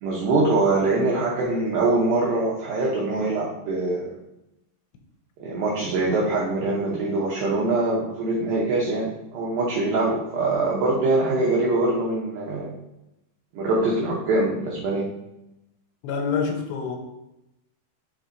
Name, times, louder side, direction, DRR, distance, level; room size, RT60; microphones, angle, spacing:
voice 1, 0.0-4.1 5.4-12.7 13.5-15.1, right 2 dB, 90° right, -3 dB, 2.0 m, -23 dB
voice 2, 16.0-17.0, left 5 dB, 75° left, 3 dB, 2.7 m, -26 dB
7.8 x 3.4 x 3.9 m, 0.90 s
omnidirectional pair, 5.4 m